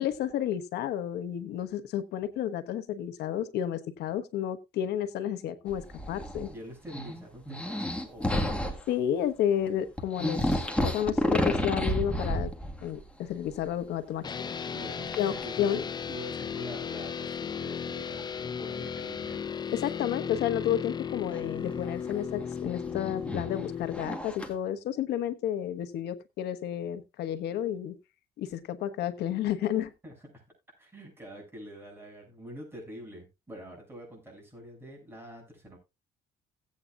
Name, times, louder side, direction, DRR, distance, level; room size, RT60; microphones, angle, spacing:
voice 1, 0.0-6.5 8.9-12.5 12.8-14.3 15.2-15.8 19.7-28.0 28.4-29.9, left 10 dB, 75° left, 1.2 m, -31 dB
sound 1, 5.7-6.5 6.8-8.9 9.7-9.8 10.0-13.0 13.3-13.8 15.1-15.5 16.1-16.2 18.2-18.3 21.3-24.5, left 1 dB, 5° left, 1.7 m, -31 dB
voice 2, 6.5-8.5 14.7-15.8 16.1-19.5 30.0-30.4 30.8-35.8, right 1 dB, 15° right, 6.7 m, -46 dB
sound 2, 14.2-24.0, left 7 dB, 25° left, 0.5 m, -35 dB
16.5 x 8.8 x 2.4 m
cardioid pair, 110°, 17 cm